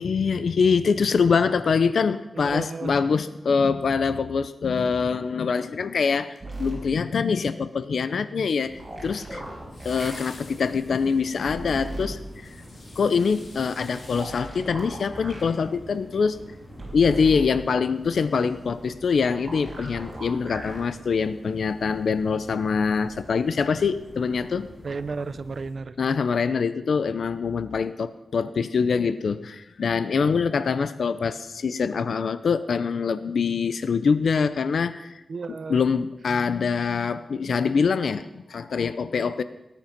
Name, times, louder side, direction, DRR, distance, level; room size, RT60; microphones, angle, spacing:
voice 1, 0.0-9.4 9.8-12.5 13.0-16.4 16.9-24.7 26.0-35.2 35.7-39.4, left 5 dB, 65° left, 13 dB, 0.6 m, -24 dB
voice 2, 2.3-2.9 24.8-26.0 35.3-35.8, right 4 dB, 45° right, 14 dB, 0.6 m, -33 dB
sound 1, 6.3-7.2 9.7-15.5 15.9-16.0, left 2 dB, 45° left, 3.2 m, -49 dB
sound 2, 6.4-6.8 8.8-10.1 11.5-12.1 14.1-15.5 16.8-17.5 19.5-20.8 22.1-22.2, right 2 dB, 20° right, 4.9 m, -37 dB
sound 3, 8.6-25.7, equal, 15° left, 7.3 m, -46 dB
19.0 x 10.0 x 5.9 m, 0.97 s
wide cardioid pair, 180°, 0 cm